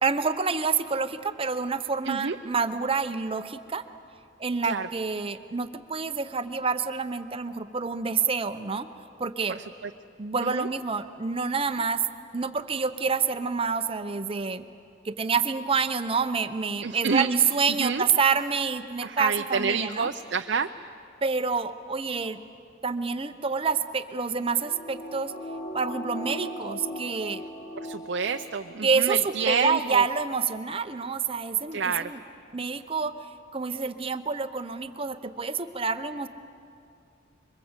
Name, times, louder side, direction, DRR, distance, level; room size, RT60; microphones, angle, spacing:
voice 1, 0.0-3.8 4.4-8.9 9.2-9.6 10.2-12.0 12.3-14.6 15.0-20.1 21.2-22.4 22.8-25.3 25.7-27.4 28.8-32.2 32.5-33.1 33.5-36.3, right 5 dB, 30° right, 10 dB, 0.8 m, -27 dB
voice 2, 16.8-17.3 17.8-18.0 19.0-20.9 27.8-30.0 31.7-32.1, right 5 dB, 60° right, 6 dB, 0.6 m, -28 dB
sound 1, 24.1-28.9 29.3-29.4, equal, 50° left, 4.5 m, -39 dB
26.5 x 23.0 x 8.1 m, 2.5 s
head